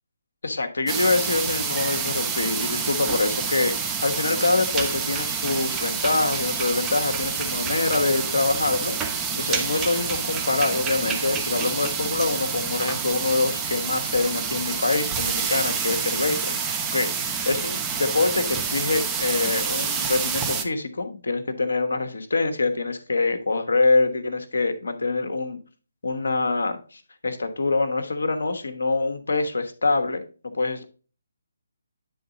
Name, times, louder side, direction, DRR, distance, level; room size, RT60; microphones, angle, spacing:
voice 1, 0.4-8.9 9.3-25.6 26.0-30.2 30.5-30.8, left 3 dB, 70° left, 7 dB, 1.2 m, -25 dB
sound 1, 0.9-20.6, right 6 dB, 15° right, 0.8 m, -28 dB
9.1 x 3.9 x 4.0 m, 0.37 s
figure-of-eight pair, 150°, 0 cm